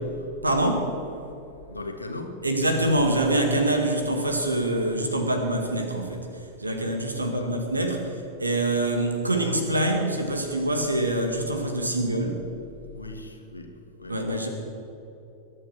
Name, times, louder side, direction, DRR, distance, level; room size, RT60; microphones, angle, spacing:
voice 1, 0.4-0.9 2.4-6.3 6.6-8.1 8.4-12.4 14.1-14.5, right 1 dB, 80° right, 4 dB, 2.0 m, -25 dB
voice 2, 1.7-2.5 7.2-7.6 12.9-14.3, left 2 dB, 80° left, 4 dB, 1.7 m, -39 dB
22.0 x 9.0 x 6.5 m, 2.8 s
figure-of-eight pair, 90°, 0 cm